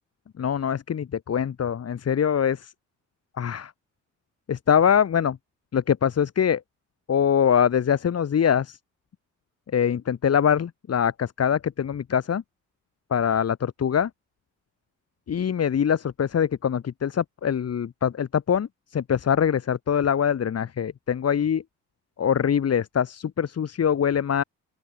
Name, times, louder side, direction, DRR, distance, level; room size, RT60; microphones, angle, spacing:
voice 1, 0.4-2.7 3.4-3.7 4.5-5.4 5.7-6.6 7.1-8.8 9.7-12.4 13.1-14.1 15.3-21.6 22.2-24.4, left 8 dB, 55° left, 7.5 m, -23 dB
open air
cardioid pair, 90°, 30 cm